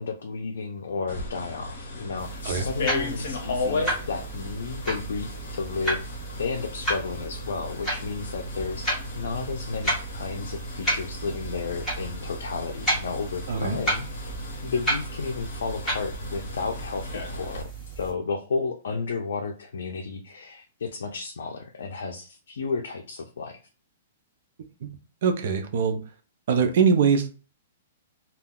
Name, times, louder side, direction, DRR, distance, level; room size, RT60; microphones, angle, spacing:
voice 1, 0.0-6.1 6.4-14.3 14.6-17.7 18.0-23.6, left 4 dB, 90° left, 3 dB, 0.4 m, -32 dB
sound 1, 1.1-17.6, left 2 dB, 60° left, 0.9 m, -36 dB
sound 2, 2.2-18.1, right 1 dB, 5° left, 1.2 m, -33 dB
voice 2, 13.5-13.8 24.8-24.9 25.2-26.0 26.5-27.3, right 6 dB, 55° right, 6 dB, 0.5 m, -22 dB
2.3 x 2.3 x 3.5 m, 0.36 s
hypercardioid pair, 170°, 0 cm